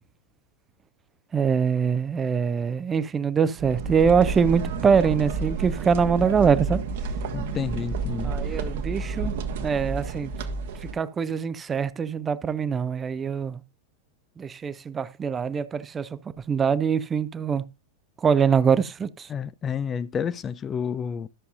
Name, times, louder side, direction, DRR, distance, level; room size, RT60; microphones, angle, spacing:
voice 1, 1.3-6.8 8.2-10.3 10.9-13.6 14.4-16.1 16.5-17.6 18.2-19.3, right 6 dB, 20° right, 0.6 m, -23 dB
sound 1, 3.6-10.9, right 4 dB, 55° right, 1.4 m, -30 dB
voice 2, 7.3-8.6 19.3-21.3, left 7 dB, 25° left, 0.4 m, -30 dB
13.5 x 6.8 x 2.6 m
figure-of-eight pair, 90°, 0 cm